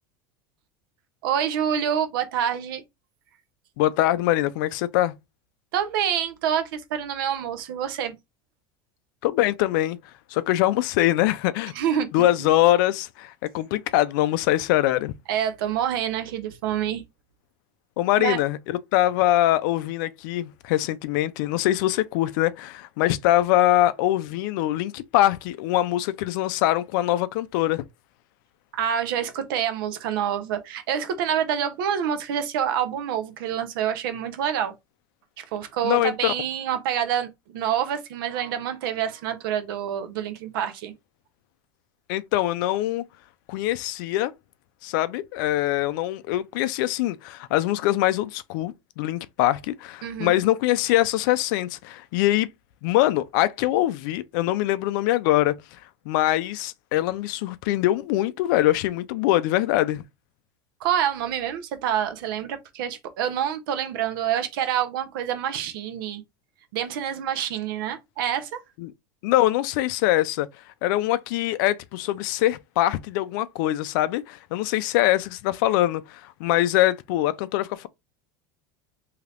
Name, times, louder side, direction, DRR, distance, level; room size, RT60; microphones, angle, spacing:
voice 1, 1.2-2.8 5.7-8.1 11.7-12.1 12.4-12.5 15.3-17.0 18.2-18.4 28.7-34.7 35.4-40.9 50.0-50.4 60.8-66.2 66.7-68.6, right 9 dB, 80° right, 0.7 m, -27 dB
voice 2, 3.8-5.1 9.2-10.0 10.3-11.7 12.1-15.1 18.0-27.8 35.8-36.3 42.1-43.0 43.5-44.3 44.8-52.5 52.8-55.5 56.1-60.0 68.8-68.9 69.2-70.5 70.8-77.9, left 14 dB, 65° left, 0.4 m, -23 dB
2.8 x 2.4 x 3.3 m
supercardioid pair, 155°, 11 cm